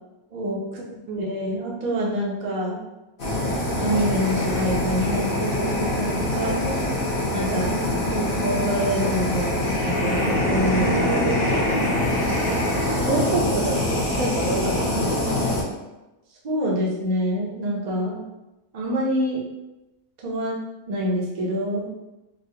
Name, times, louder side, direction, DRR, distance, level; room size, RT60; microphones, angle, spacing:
voice 1, 1.2-2.8 3.8-6.5 7.3-7.8 8.0-10.9 16.4-18.2 18.7-19.4 20.2-20.5 20.9-21.9, equal, 45° right, -4 dB, 0.5 m, -26 dB
Fire, 3.2-15.6, left 1 dB, 45° left, 0.8 m, -24 dB
voice 2, 6.3-7.0 10.8-11.7 13.1-15.6, right 2 dB, 75° right, -1 dB, 1.0 m, -28 dB
4.0 x 2.1 x 2.7 m, 1.0 s
omnidirectional pair, 1.6 m